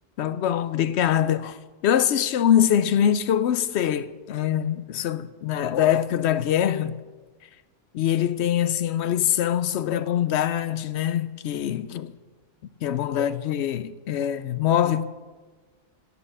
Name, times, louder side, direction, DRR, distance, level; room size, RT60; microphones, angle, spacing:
voice 1, 0.2-1.6 1.8-6.9 7.9-12.1 12.8-15.0, left 10 dB, 70° left, 0.8 m, -23 dB
11.0 x 8.7 x 6.8 m
omnidirectional pair, 1.3 m